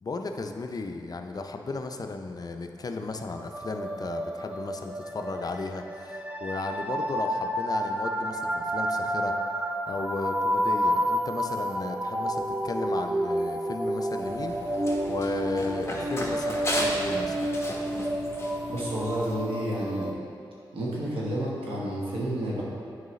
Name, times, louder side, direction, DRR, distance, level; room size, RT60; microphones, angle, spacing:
voice 1, 0.0-9.3 9.9-17.4, left 3 dB, 45° left, 5 dB, 0.5 m, -35 dB
sound 1, 3.3-20.1, equal, 15° right, 0.5 m, -30 dB
Run, 14.2-19.3, left 1 dB, 30° left, 1.1 m, -35 dB
voice 2, 18.7-20.1 20.7-22.6, right 1 dB, 90° right, -5 dB, 1.3 m, -30 dB
7.9 x 4.8 x 3.2 m, 2.4 s
cardioid pair, 55°, 9 cm